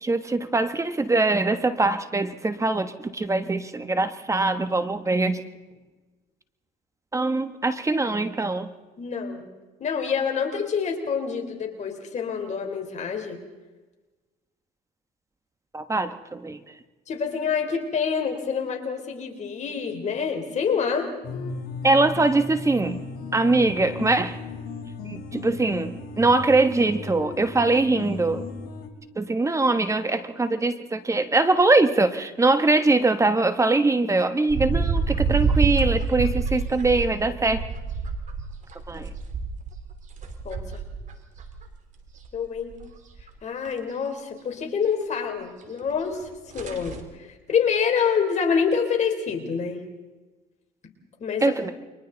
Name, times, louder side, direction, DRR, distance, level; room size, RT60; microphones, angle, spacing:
voice 1, 0.0-5.4 7.1-8.7 15.7-16.8 21.8-23.0 23.3-24.4 25.0-28.5 29.1-37.6 38.9-39.1 51.4-51.7, right 3 dB, 20° right, 10 dB, 1.2 m, -22 dB
voice 2, 9.0-9.5 9.8-13.4 17.1-21.1 40.4-40.8 42.3-42.7 43.4-46.2 46.5-47.0 47.5-49.8 51.2-51.5, left 6 dB, 45° left, 3 dB, 3.8 m, -26 dB
sound 1, 21.2-28.9, left 3 dB, 65° left, 3.0 m, -36 dB
sound 2, 34.5-41.6 42.0-42.9 43.2-43.3 43.7-43.8 45.8-45.9 46.2-46.3 46.5-47.0, right 5 dB, 45° right, 2.7 m, -27 dB
29.5 x 23.5 x 4.0 m, 1.2 s
cardioid pair, 110°, 17 cm